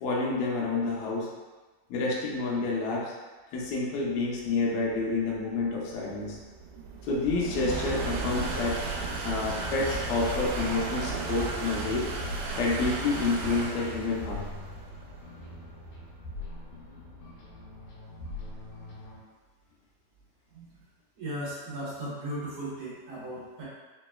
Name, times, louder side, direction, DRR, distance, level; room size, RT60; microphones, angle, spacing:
voice 1, 0.0-1.3 1.9-3.1 3.5-6.4 7.1-8.8 9.2-12.0 12.5-14.4, left 3 dB, 85° left, -4 dB, 1.6 m, -29 dB
sound 1, 4.5-17.9, right 3 dB, 90° right, 2.4 m, -35 dB
sound 2, 8.2-19.2, left 2 dB, 65° left, 1.8 m, -43 dB
voice 2, 21.2-23.6, right 1 dB, 60° right, -10 dB, 1.9 m, -36 dB
5.1 x 3.0 x 2.3 m, 1.3 s
omnidirectional pair, 4.1 m